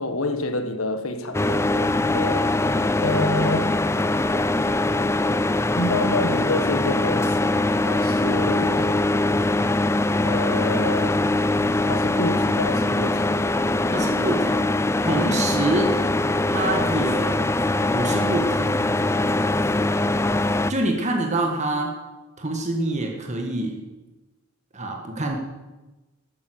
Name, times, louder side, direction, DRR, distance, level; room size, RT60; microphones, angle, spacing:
voice 1, 0.0-4.0 5.8-9.0 10.2-11.2 11.9-13.4, left 2 dB, 75° left, 8 dB, 1.4 m, -28 dB
sound 1, 1.3-20.7, left 2 dB, 15° left, 0.4 m, -22 dB
voice 2, 13.9-14.7 15.0-16.0 16.5-17.5 17.9-18.8 20.7-21.9 22.4-23.8 24.7-25.4, right 2 dB, 35° right, 1 dB, 1.7 m, -25 dB
13.0 x 9.5 x 7.7 m, 1.1 s
head